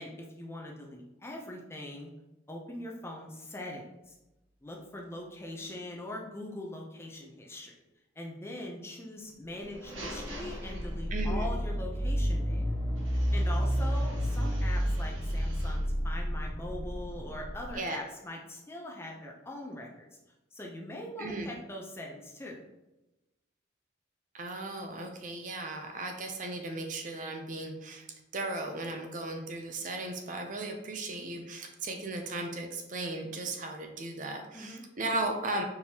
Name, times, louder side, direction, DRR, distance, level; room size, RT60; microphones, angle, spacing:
voice 1, 0.0-2.1 2.5-4.2 4.6-7.8 8.2-12.6 13.1-20.1 20.5-22.6 34.5-34.8, left 1 dB, 15° left, -1 dB, 0.5 m, -42 dB
sound 1, 9.5-11.4 13.0-15.9, right 1 dB, 85° right, 1.2 m, -47 dB
sound 2, 9.9-17.7, equal, 5° right, 1.3 m, -30 dB
voice 2, 11.1-11.5 17.7-18.0 21.2-21.5 24.3-28.1 28.3-35.6, right 2 dB, 40° right, 4 dB, 0.5 m, -36 dB
4.5 x 3.5 x 2.8 m, 0.99 s
head